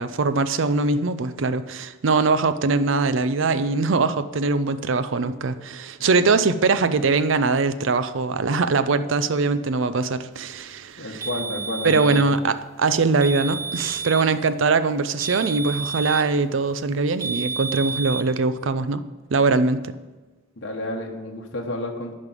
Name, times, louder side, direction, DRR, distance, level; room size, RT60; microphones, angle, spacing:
voice 1, 0.0-11.3 11.8-19.0 19.3-19.9, right 4 dB, 75° right, 13 dB, 0.5 m, -22 dB
voice 2, 11.0-12.2 20.6-22.1, left 1 dB, 60° left, 0 dB, 1.1 m, -30 dB
sound 1, 11.2-12.3 13.2-14.3 15.2-16.3 17.2-18.3, right 5 dB, 15° right, 0.3 m, -30 dB
9.6 x 5.4 x 7.5 m, 1.2 s
head